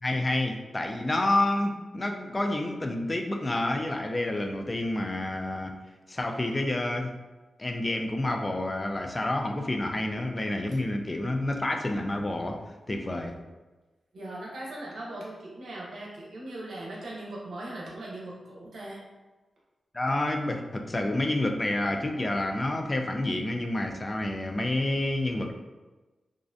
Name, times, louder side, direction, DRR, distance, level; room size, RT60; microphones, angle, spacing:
voice 1, 0.0-5.7 6.1-7.1 7.6-12.6 12.9-13.4 19.9-25.5, left 1 dB, 35° left, 4 dB, 0.3 m, -29 dB
voice 2, 14.1-19.0, right 1 dB, 80° right, -5 dB, 0.6 m, -39 dB
2.5 x 2.0 x 2.5 m, 1.2 s
cardioid pair, 45°, 0 cm